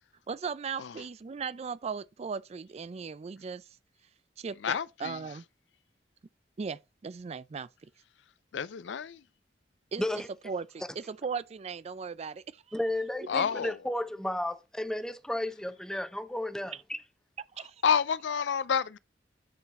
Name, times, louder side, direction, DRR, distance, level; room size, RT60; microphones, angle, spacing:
voice 1, 0.3-3.6 4.4-5.4 6.6-7.9 9.9-12.8 16.7-16.8 17.6-17.8, right 5 dB, 35° right, 0.4 m, -38 dB
voice 2, 4.6-5.1 8.5-9.2 13.3-13.7 17.8-19.0, left 7 dB, 75° left, 0.4 m, -28 dB
voice 3, 12.7-17.0, left 1 dB, 5° left, 0.7 m, -33 dB
9.5 x 4.1 x 4.2 m
head